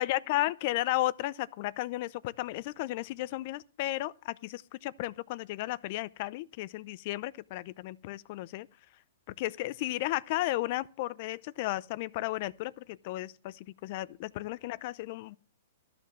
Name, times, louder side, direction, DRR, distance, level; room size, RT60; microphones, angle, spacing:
voice 1, 0.0-8.7 9.3-15.4, left 17 dB, 50° left, 0.6 m, -34 dB
13.5 x 5.9 x 7.5 m
hypercardioid pair, 135°, 0 cm